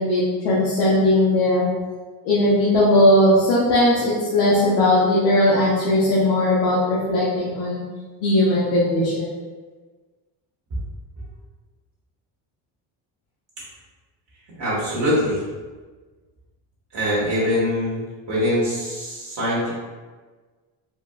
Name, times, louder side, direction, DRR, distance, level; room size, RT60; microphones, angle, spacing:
voice 1, 0.0-1.7 2.2-7.8 8.2-9.3, left 1 dB, 80° left, -8 dB, 1.0 m, -18 dB
voice 2, 14.6-15.4 16.9-18.0 18.3-19.7, equal, 55° right, -9 dB, 1.5 m, -23 dB
4.4 x 2.5 x 2.3 m, 1.4 s
supercardioid pair, 85°, 50 cm